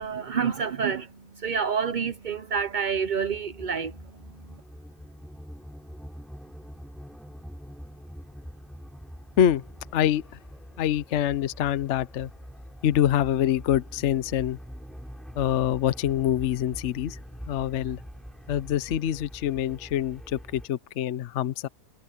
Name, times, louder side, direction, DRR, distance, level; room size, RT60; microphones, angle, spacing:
voice 1, 0.0-4.6, right 6 dB, 50° right, 0.5 m, -29 dB
sound 1, 1.4-20.7, equal, ahead, 7.9 m, -44 dB
voice 2, 9.9-10.2 10.8-12.3 12.8-14.6 15.4-17.2 17.5-18.0 18.5-21.7, left 11 dB, 55° left, 0.8 m, -25 dB
omnidirectional pair, 1.8 m